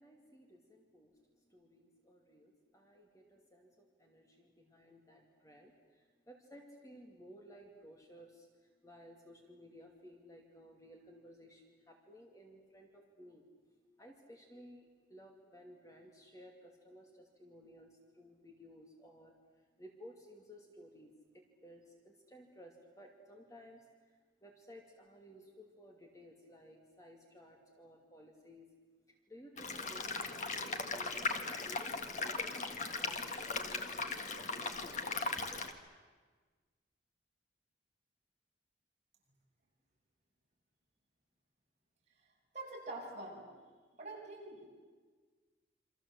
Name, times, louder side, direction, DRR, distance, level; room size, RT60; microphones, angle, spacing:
voice 1, 0.0-13.5 14.0-28.7 29.1-32.6 33.0-35.2, equal, 20° left, 1 dB, 2.6 m, -57 dB
sound 1, 29.6-35.7, left 4 dB, 40° left, 1.8 m, -38 dB
voice 2, 42.5-43.4 44.0-44.7, right 2 dB, 35° right, -3 dB, 7.7 m, -45 dB
28.5 x 25.5 x 7.8 m, 1.4 s
head